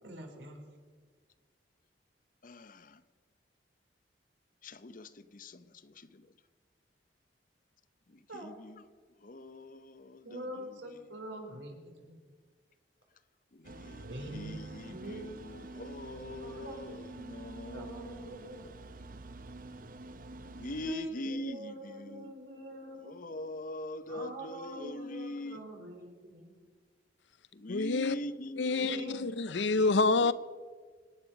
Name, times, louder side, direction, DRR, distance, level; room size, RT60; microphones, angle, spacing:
voice 1, 0.0-0.6 8.3-8.5 10.2-12.2 14.0-14.5 14.9-15.3 16.4-16.8 17.7-18.7 20.8-23.2 24.1-26.5 28.8-29.3 29.7-30.1, right 1 dB, 85° right, 3.8 m, -44 dB
voice 2, 2.4-3.0 4.6-6.2 8.3-8.8 9.2-10.8 13.5-18.6 20.5-22.3 23.0-25.6 27.5-29.3 29.8-30.0, left 1 dB, 50° left, 0.7 m, -42 dB
sound 1, 13.6-21.0, right 2 dB, 50° right, 0.8 m, -47 dB
voice 3, 27.7-28.2 28.6-30.3, left 3 dB, 80° left, 0.7 m, -27 dB
25.0 x 9.9 x 5.8 m
head